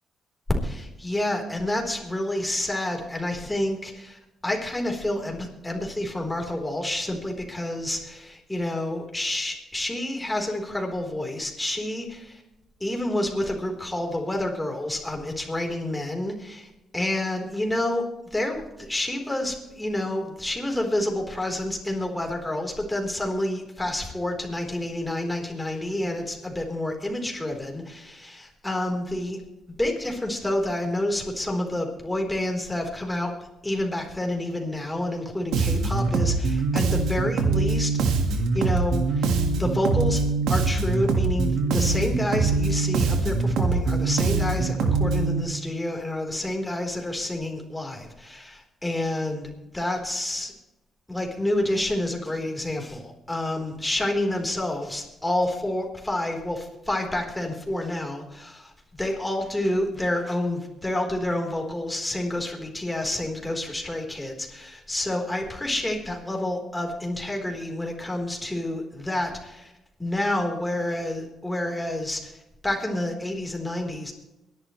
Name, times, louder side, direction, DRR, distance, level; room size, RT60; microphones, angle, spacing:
voice 1, 0.6-12.4 12.8-18.0 18.3-29.4 29.8-33.3 33.6-38.0 38.3-39.3 39.6-40.2 40.5-50.5 51.1-58.7 59.0-69.7 70.0-72.4 72.6-74.1, left 1 dB, 10° left, 2 dB, 4.0 m, -29 dB
Bass guitar, 35.5-45.4, right 4 dB, 85° right, 1.8 m, -23 dB
23.5 x 11.5 x 3.2 m, 0.97 s
cardioid pair, 90°, 0 cm